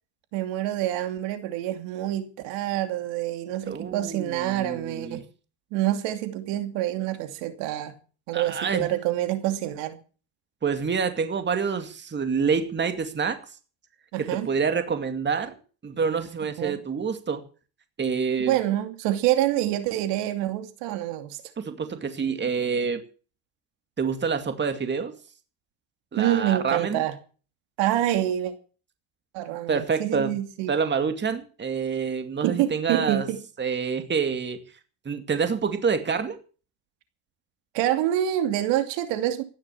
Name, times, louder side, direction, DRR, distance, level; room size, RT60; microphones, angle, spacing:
voice 1, 0.3-5.2 5.7-7.9 8.3-10.0 14.1-14.5 16.6-16.8 18.4-21.4 26.2-27.1 27.8-28.5 29.3-30.8 32.4-33.4 37.7-39.4, right 13 dB, 70° right, 2.8 m, -26 dB
voice 2, 3.7-5.2 8.3-8.9 10.6-13.4 14.2-15.5 15.8-17.4 18.0-18.5 21.6-23.0 24.0-25.1 26.1-27.0 29.7-30.3 30.7-33.3 33.6-34.6 35.0-36.4, right 5 dB, 25° right, 2.4 m, -27 dB
15.5 x 11.5 x 7.1 m
supercardioid pair, 110°, 46 cm